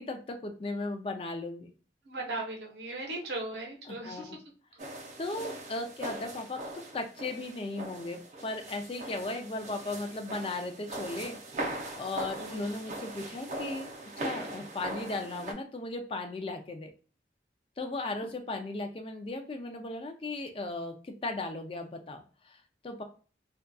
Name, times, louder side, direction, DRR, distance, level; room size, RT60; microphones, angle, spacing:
voice 1, 0.0-1.7 3.9-4.4 5.2-6.6 6.9-11.4 11.9-13.9 14.2-16.9 17.8-23.0, left 2 dB, 30° left, 5 dB, 0.3 m, -36 dB
voice 2, 2.0-4.3 5.3-5.4 6.0-6.1 12.4-12.7, right 2 dB, 75° right, 0 dB, 0.8 m, -38 dB
sound 1, 4.8-15.5, right 1 dB, 40° right, 0.5 m, -40 dB
2.5 x 2.3 x 2.2 m, 0.38 s
head